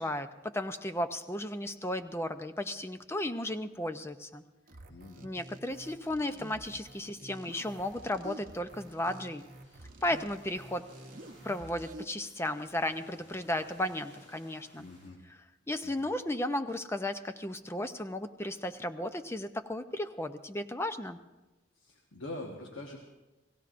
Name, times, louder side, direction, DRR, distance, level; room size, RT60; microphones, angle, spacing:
voice 1, 0.0-4.4 5.2-9.5 10.0-10.9 11.4-14.9 15.7-21.2, left 1 dB, 15° left, 9 dB, 0.6 m, -34 dB
sound 1, 4.7-12.0, right 1 dB, 45° right, 1.0 m, -49 dB
voice 2, 4.9-5.3 14.8-15.2 15.8-16.1 21.7-23.0, left 2 dB, 85° left, 1 dB, 1.4 m, -44 dB
sound 2, 7.7-15.1, equal, 40° left, 6.8 m, -60 dB
30.0 x 17.0 x 2.6 m, 1.1 s
head